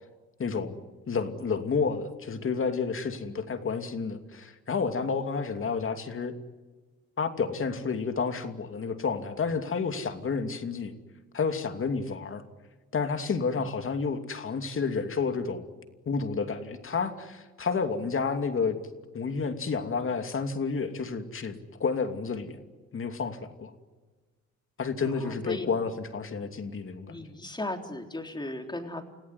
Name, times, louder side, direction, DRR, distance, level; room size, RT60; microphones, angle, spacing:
voice 1, 0.4-0.8 1.1-6.3 7.2-10.9 11.3-12.4 12.9-15.6 16.1-18.8 19.1-22.6 22.9-23.7 24.8-27.3, left 5 dB, 45° left, 7 dB, 2.7 m, -30 dB
voice 2, 25.2-25.7 27.1-29.1, left 2 dB, 15° left, 4 dB, 3.7 m, -36 dB
30.0 x 17.0 x 9.8 m, 1.3 s
cardioid pair, 90°, 30 cm